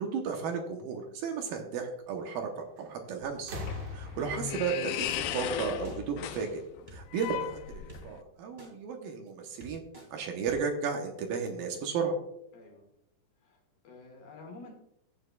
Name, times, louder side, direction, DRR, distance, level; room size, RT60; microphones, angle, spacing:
voice 1, 0.0-3.6 3.9-6.6 6.9-9.8 10.1-12.2, right 5 dB, 75° right, 3 dB, 2.5 m, -34 dB
sound 1, 2.8-3.1 3.4-6.1 7.3-7.4, left 2 dB, 55° right, 2.1 m, -42 dB
sound 2, 3.2-8.2, left 11 dB, 90° left, 2.7 m, -37 dB
sound 3, 5.2-5.3 5.8-6.0 6.9-7.3 7.9-8.0 8.6-8.7 9.3-9.4 9.6-10.1 10.5-10.6, right 2 dB, 15° right, 1.6 m, -48 dB
voice 2, 12.5-12.9 13.4-14.7, left 3 dB, 70° left, 1 dB, 3.6 m, -50 dB
14.0 x 8.8 x 2.3 m, 0.80 s
omnidirectional pair, 4.6 m